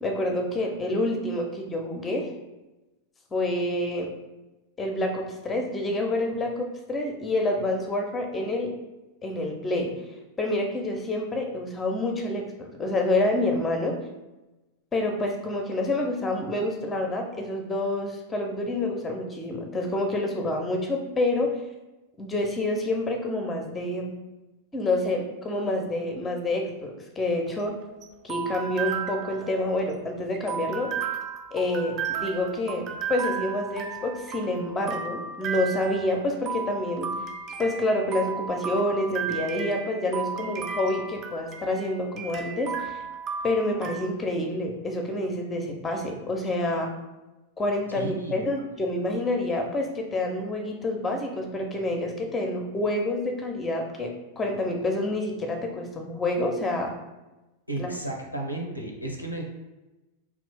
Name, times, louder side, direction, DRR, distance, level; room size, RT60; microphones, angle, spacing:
voice 1, 0.0-2.3 3.3-4.1 4.8-8.7 9.2-9.9 10.4-14.0 14.9-21.5 22.2-24.1 24.7-27.8 28.2-30.9 31.5-37.1 37.6-43.0 43.4-46.9 47.6-56.9 57.8-57.9, left 1 dB, 15° left, 3 dB, 0.6 m, -28 dB
sound 1, 27.3-44.0, right 6 dB, 35° right, 0.4 m, -34 dB
voice 2, 47.9-48.4 57.7-59.4, right 2 dB, 90° left, 1 dB, 0.5 m, -33 dB
2.8 x 2.5 x 3.5 m, 1.0 s
figure-of-eight pair, 90°, 0 cm